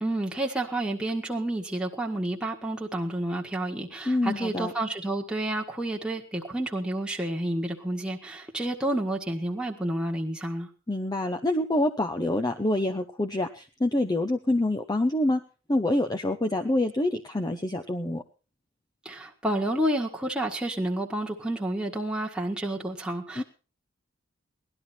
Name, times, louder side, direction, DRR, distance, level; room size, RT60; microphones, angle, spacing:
voice 1, 0.0-10.7 19.0-23.4, right 1 dB, 5° right, -1 dB, 1.6 m, -30 dB
voice 2, 4.1-4.7 10.9-15.4 15.7-18.2 23.4-23.5, left 1 dB, 20° left, 5 dB, 0.7 m, -26 dB
18.5 x 11.5 x 4.3 m, 0.35 s
head